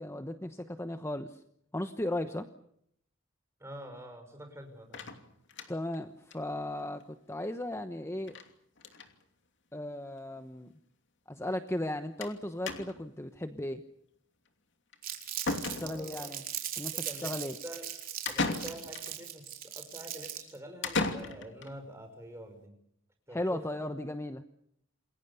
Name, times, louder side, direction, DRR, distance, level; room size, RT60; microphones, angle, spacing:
voice 1, 0.0-1.4 1.7-2.5 5.7-8.4 9.7-10.7 11.3-13.8 15.7-16.4 16.8-17.6 23.3-24.4, left 1 dB, 15° left, 8 dB, 1.0 m, -36 dB
voice 2, 3.6-5.1 15.8-16.3 17.0-17.3 17.6-17.9 18.3-22.8 23.3-23.8, right 1 dB, 15° right, 5 dB, 5.4 m, -46 dB
sound 1, 4.9-6.0 6.3-6.4 6.7-6.8 7.0-7.1 8.3-8.5 8.8-9.1 10.0-10.1 10.4-10.5 12.2-12.4 12.7-13.1 14.9-15.0 15.5-16.2 18.3-19.1 20.8-21.7, left 3 dB, 60° left, 2.9 m, -35 dB
Crumpling crinkling, 15.0-20.6, right 11 dB, 45° right, 4.4 m, -39 dB
28.5 x 22.0 x 6.9 m, 0.72 s
head